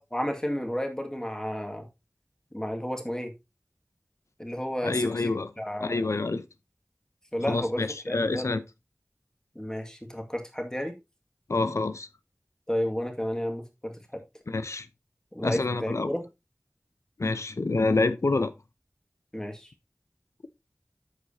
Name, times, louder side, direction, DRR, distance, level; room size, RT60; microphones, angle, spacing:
voice 1, 0.1-1.9 2.5-3.3 4.4-5.3 5.6-6.0 7.3-8.5 9.6-10.9 12.7-14.2 15.3-16.3 19.3-19.7, equal, 15° left, 2.1 m, -32 dB
voice 2, 4.8-5.5 5.8-6.4 7.5-8.6 11.5-12.1 14.5-14.9 15.4-16.1 17.2-18.5, left 3 dB, 85° left, 0.7 m, -27 dB
14.0 x 4.9 x 2.8 m
wide cardioid pair, 55°, 5 cm